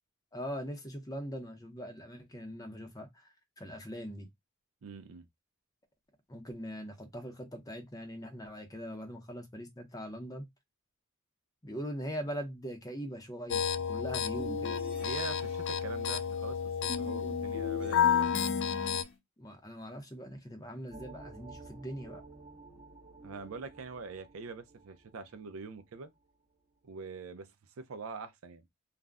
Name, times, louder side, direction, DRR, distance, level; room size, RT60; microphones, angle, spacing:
voice 1, 0.3-4.3 6.3-10.5 11.6-14.8 19.4-22.2, equal, 15° left, 0.6 m, -41 dB
voice 2, 4.8-5.2 15.0-18.3 23.2-26.1 26.8-27.5 27.8-28.7, right 4 dB, 70° right, 0.5 m, -44 dB
sound 1, 13.5-19.0, left 8 dB, 55° left, 0.3 m, -31 dB
sound 2, 14.4-15.6 16.9-19.1, left 4 dB, 75° left, 0.9 m, -39 dB
sound 3, 20.9-26.2, right 3 dB, 30° right, 0.7 m, -52 dB
2.4 x 2.1 x 3.4 m
head